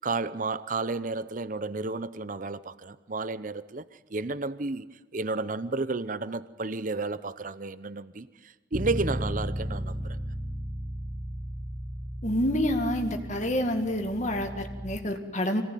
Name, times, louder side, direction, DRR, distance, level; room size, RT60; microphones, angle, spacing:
voice 1, 0.0-3.8 4.1-10.2, right 3 dB, 45° right, 15 dB, 0.7 m, -32 dB
Bass guitar, 8.7-15.0, equal, 5° right, 1.4 m, -35 dB
voice 2, 12.2-15.6, left 1 dB, 40° left, 5 dB, 2.2 m, -28 dB
26.0 x 18.5 x 9.3 m, 1.2 s
head